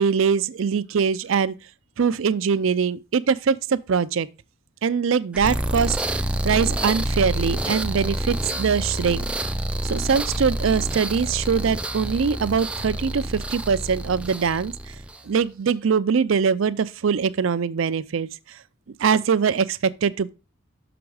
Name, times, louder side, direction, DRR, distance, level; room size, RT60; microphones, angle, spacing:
voice 1, 0.0-1.6 2.0-4.3 4.8-6.0 6.4-9.3 9.8-14.7 15.3-18.3 19.0-20.3, right 6 dB, 65° right, 0.4 m, -22 dB
sound 1, 5.3-15.3, right 1 dB, 5° right, 0.4 m, -28 dB
6.2 x 5.9 x 4.7 m
head